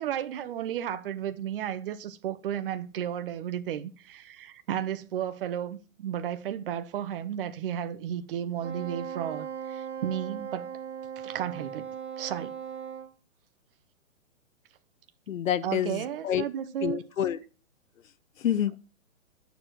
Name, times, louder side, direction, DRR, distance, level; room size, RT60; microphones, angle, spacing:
voice 1, 0.0-10.7 11.2-11.9 12.2-12.5 15.6-17.0, right 10 dB, 40° right, 1.1 m, -33 dB
Wind instrument woodwind instrument, 8.6-13.1, right 8 dB, 20° right, 3.3 m, -38 dB
voice 2, 15.3-16.4 16.8-17.4 18.4-18.7, left 10 dB, 70° left, 0.9 m, -28 dB
11.5 x 7.2 x 6.1 m
hypercardioid pair, 150°, 41 cm